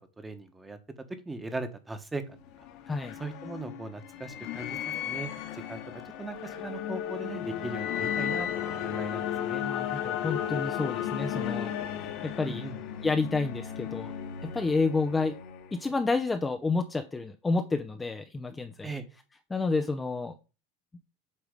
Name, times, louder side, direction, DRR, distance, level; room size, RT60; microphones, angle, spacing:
voice 1, 0.2-0.8 1.2-2.4 3.2-4.8 5.0-9.6 12.4-12.7 18.8-19.0, right 3 dB, 10° right, 9 dB, 1.2 m, -39 dB
sound 1, 2.3-16.1, left 10 dB, 50° left, 1.4 m, -34 dB
voice 2, 9.6-12.1 12.4-12.6 13.0-14.1 14.4-15.4 15.7-18.9 19.5-20.3, left 3 dB, 10° left, 6 dB, 0.6 m, -30 dB
8.2 x 3.4 x 5.2 m, 0.32 s
supercardioid pair, 125°, 0 cm